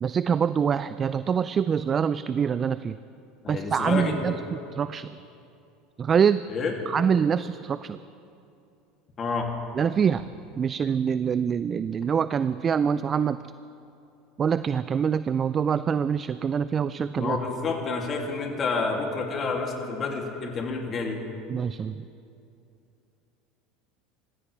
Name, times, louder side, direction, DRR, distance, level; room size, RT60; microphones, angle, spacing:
voice 1, 0.0-3.0 3.5-4.3 4.7-5.2 6.0-6.4 6.9-8.0 9.8-10.2 10.6-13.4 14.4-17.4 21.5-22.0, right 7 dB, 35° right, 14 dB, 0.4 m, -25 dB
voice 2, 3.4-4.4 6.5-6.7 9.2-9.5 17.2-21.2, left 4 dB, 35° left, 1 dB, 2.7 m, -29 dB
27.0 x 15.5 x 3.4 m, 2.6 s
hypercardioid pair, 80°, 0 cm